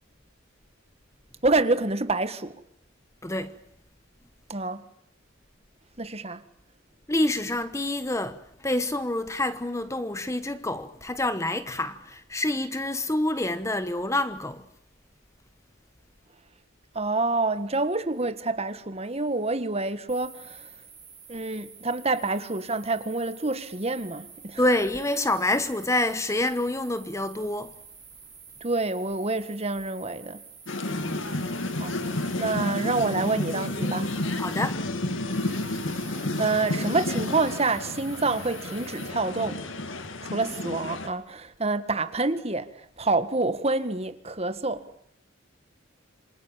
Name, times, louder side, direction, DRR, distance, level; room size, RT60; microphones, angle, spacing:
voice 1, 1.4-2.6 4.5-4.8 6.0-6.4 16.9-20.7 21.3-24.6 28.6-30.4 31.8-31.9 32.4-34.1 36.0-39.6 40.2-42.7 43.0-44.9, right 3 dB, 30° right, 1.7 m, -27 dB
voice 2, 3.2-3.6 7.1-14.6 24.6-27.7 30.9-31.3 34.4-34.9, left 1 dB, 15° left, 1.1 m, -27 dB
sound 1, 20.1-39.1, right 5 dB, 10° right, 5.3 m, -49 dB
sound 2, 30.7-41.1, left 2 dB, 65° left, 2.3 m, -31 dB
28.0 x 26.5 x 7.4 m
head